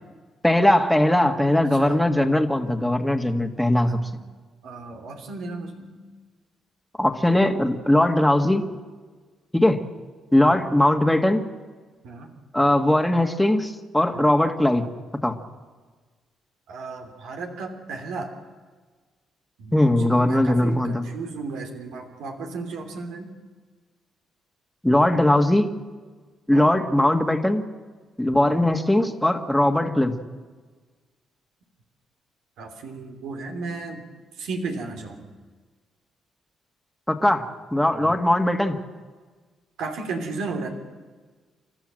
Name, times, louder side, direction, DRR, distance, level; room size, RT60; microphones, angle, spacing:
voice 1, 0.4-4.0 7.0-8.7 9.5-9.8 10.3-11.4 12.5-14.9 15.2-15.4 19.7-21.1 24.8-25.7 26.5-27.6 28.2-30.2 37.1-38.8, left 1 dB, 5° left, 4 dB, 1.9 m, -20 dB
voice 2, 1.6-2.0 3.9-4.2 4.6-6.0 10.4-10.6 12.0-12.3 14.1-14.4 16.7-18.3 19.6-23.3 26.5-26.7 28.4-28.6 32.6-34.1 34.4-35.3 38.0-38.2 39.8-40.7, right 3 dB, 85° right, 4 dB, 3.1 m, -34 dB
30.0 x 13.0 x 7.7 m, 1.4 s
cardioid pair, 90°, 0 cm